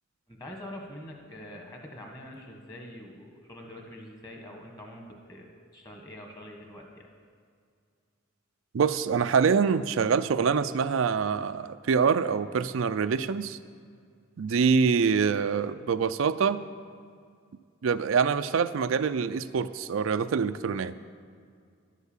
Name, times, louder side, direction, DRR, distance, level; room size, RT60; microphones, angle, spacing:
voice 1, 0.3-7.1, left 1 dB, 15° left, 1 dB, 1.5 m, -45 dB
voice 2, 8.7-13.6 14.4-16.6 17.8-20.9, right 6 dB, 75° right, 11 dB, 0.4 m, -25 dB
11.5 x 8.3 x 7.2 m, 2.2 s
head